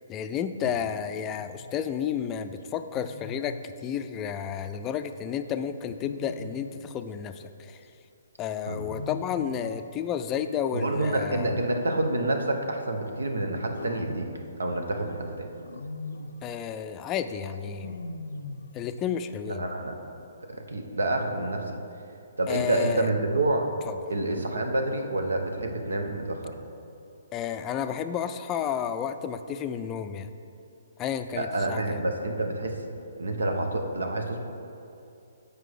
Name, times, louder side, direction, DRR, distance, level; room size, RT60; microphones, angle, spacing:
voice 1, 0.1-7.8 8.4-11.5 16.4-18.0 18.7-19.6 22.5-23.1 23.9-24.0 27.3-30.3 31.0-32.0, left 8 dB, 20° left, 9 dB, 0.3 m, -31 dB
Wild animals, 1.4-1.7 2.9-3.7 6.0-6.9 8.7-9.8 11.2-12.2 13.7-14.9 15.6-16.5 17.8-18.8, left 3 dB, 85° left, 0.4 m, -40 dB
voice 2, 10.7-14.3 14.6-15.5 19.5-20.0 20.7-21.6 22.4-23.7 24.1-26.5 31.4-32.8 33.2-34.4, right 2 dB, 85° right, 4 dB, 0.9 m, -28 dB
7.8 x 4.9 x 4.9 m, 2.7 s
hypercardioid pair, 145°, 0 cm